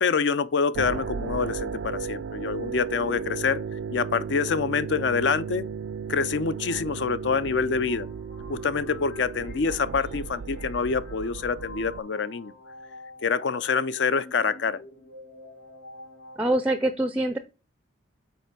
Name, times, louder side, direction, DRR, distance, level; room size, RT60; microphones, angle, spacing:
voice 1, 0.0-3.6 3.9-5.6 6.1-8.1 8.5-12.5 13.2-14.8, left 5 dB, 65° left, 0.5 m, -26 dB
sound 1, 0.7-12.0, right 6 dB, 75° right, 0.4 m, -35 dB
sound 2, 7.8-16.5, left 2 dB, 85° left, 1.8 m, -48 dB
voice 2, 16.4-17.4, right 1 dB, 5° right, 0.4 m, -24 dB
5.6 x 4.4 x 6.0 m
head